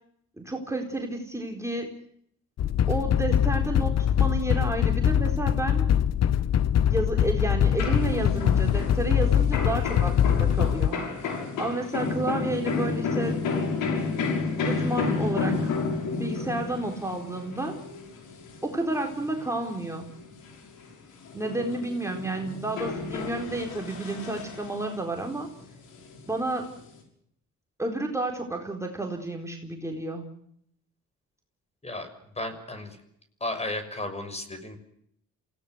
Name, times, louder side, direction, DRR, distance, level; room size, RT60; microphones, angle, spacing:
voice 1, 0.4-1.9 2.9-5.9 6.9-11.0 11.6-13.4 14.6-15.7 16.2-17.8 18.6-20.1 21.3-25.5 26.3-26.7 27.8-30.2, right 2 dB, 10° right, 2 dB, 4.1 m, -31 dB
sound 1, 2.6-10.9, left 10 dB, 60° left, 0.9 m, -23 dB
sound 2, 7.8-20.9 21.2-24.9 25.3-27.0, left 4 dB, 90° left, 6.6 m, -31 dB
voice 2, 32.4-33.0 33.4-34.8, left 2 dB, 20° left, 9 dB, 6.2 m, -33 dB
28.0 x 18.0 x 8.0 m, 0.71 s
cardioid pair, 90°, 30 cm